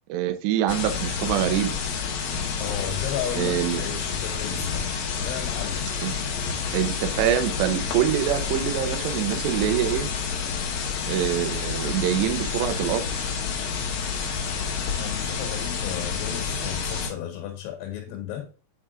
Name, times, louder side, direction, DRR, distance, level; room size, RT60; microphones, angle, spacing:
voice 1, 0.1-1.8 3.3-3.8 6.0-6.1 6.7-10.1 11.1-13.3, right 11 dB, 80° right, 2.5 m, -25 dB
sound 1, 0.7-17.1, left 6 dB, 65° left, 2.6 m, -29 dB
voice 2, 2.6-4.9 5.2-5.9 14.9-18.5, left 10 dB, 80° left, 4.2 m, -34 dB
9.4 x 4.9 x 2.5 m
omnidirectional pair, 6.0 m